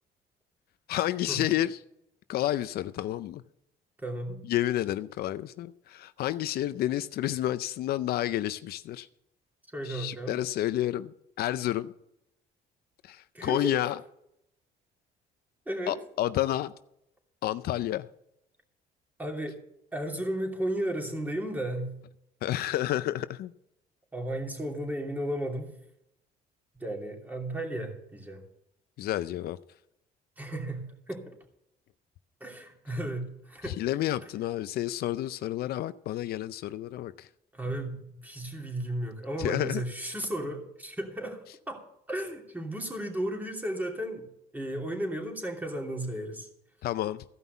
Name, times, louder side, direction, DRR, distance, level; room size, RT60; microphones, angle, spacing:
voice 1, 0.9-1.8 2.3-3.4 4.5-9.1 9.8-11.9 13.0-14.0 15.9-16.7 17.4-18.1 22.4-23.5 29.0-29.6 33.6-37.3 39.4-39.8 46.8-47.2, left 13 dB, 65° left, 0.5 m, -30 dB
voice 2, 4.0-4.4 9.7-10.4 13.3-13.7 15.7-15.9 19.2-19.6 19.9-21.9 22.5-22.7 24.1-25.7 26.7-28.4 30.4-31.3 32.4-33.8 37.5-41.4 41.7-41.8 42.1-44.3 44.5-46.5, right 1 dB, 10° right, 2.9 m, -34 dB
15.0 x 5.5 x 8.1 m
cardioid pair, 110°, 17 cm